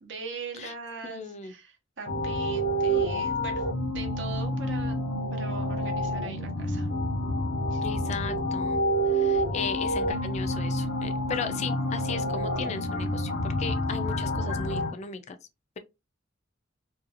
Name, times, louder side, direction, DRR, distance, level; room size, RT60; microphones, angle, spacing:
voice 1, 0.0-5.0 5.3-6.9 7.7-7.9, right 4 dB, 65° right, 0.7 m, -41 dB
voice 2, 1.0-1.5 7.8-8.8 9.1-15.4, left 5 dB, 35° left, 0.3 m, -36 dB
sound 1, 2.1-14.9, equal, 85° left, 0.7 m, -28 dB
2.5 x 2.3 x 2.5 m
head